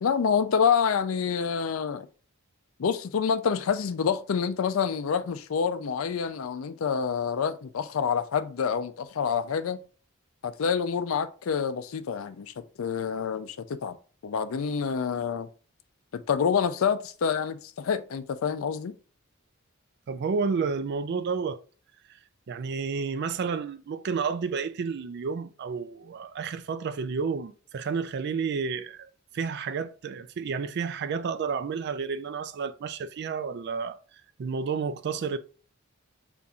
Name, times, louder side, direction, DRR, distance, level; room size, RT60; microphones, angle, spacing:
voice 1, 0.0-2.1 2.8-9.8 10.4-14.0 14.2-15.5 16.1-19.0, left 6 dB, 80° left, 0.4 m, -27 dB
voice 2, 20.1-21.6 22.5-34.0 34.4-35.4, right 5 dB, 55° right, 0.4 m, -31 dB
6.9 x 2.6 x 2.3 m
head